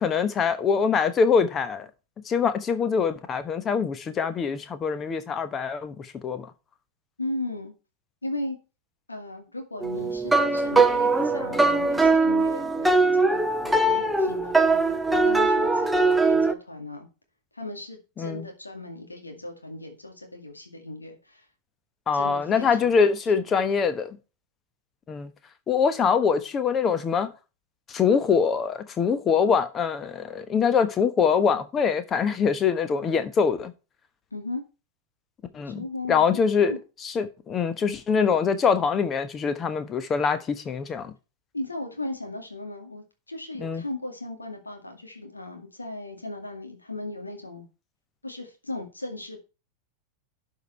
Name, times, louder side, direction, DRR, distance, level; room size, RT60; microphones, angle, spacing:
voice 1, 0.0-1.9 2.2-6.5 18.2-18.4 22.1-24.2 25.1-25.3 25.7-27.3 27.9-33.7 35.5-36.7 37.0-41.1 43.6-43.8, left 6 dB, 25° left, 1.1 m, -24 dB
voice 2, 7.2-7.7 8.2-8.6 9.1-17.1 17.5-21.4 22.1-23.0 23.3-23.5 34.3-34.6 35.6-36.8 41.5-47.7 48.2-49.4, left 2 dB, 80° left, 2.2 m, -37 dB
sound 1, 9.8-16.5, right 3 dB, 5° right, 0.8 m, -21 dB
12.0 x 4.9 x 4.4 m
figure-of-eight pair, 90°, 0 cm